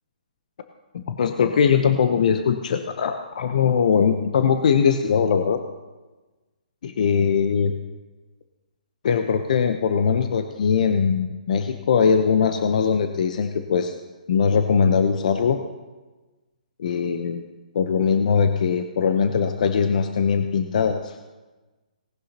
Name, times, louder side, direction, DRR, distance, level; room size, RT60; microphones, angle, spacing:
voice 1, 0.9-5.6 6.8-7.7 9.0-13.9 14.3-15.6 16.8-17.4 17.7-21.1, left 6 dB, 60° left, 7 dB, 0.8 m, -21 dB
18.5 x 11.0 x 2.9 m, 1.2 s
hypercardioid pair, 145°, 5 cm